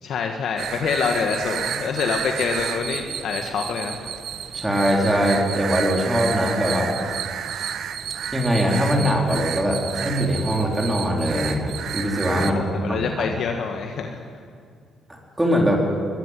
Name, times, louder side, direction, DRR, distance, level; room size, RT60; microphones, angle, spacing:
voice 1, 0.0-4.1 12.4-14.2, left 5 dB, 70° left, 3 dB, 1.7 m, -26 dB
sound 1, 0.6-12.5, right 8 dB, 70° right, 1.0 m, -31 dB
voice 2, 4.5-6.9 8.3-12.6 12.9-13.0 15.4-15.8, equal, 10° right, -1 dB, 4.2 m, -21 dB
21.0 x 14.5 x 10.0 m, 2.2 s
cardioid pair, 90°, 0 cm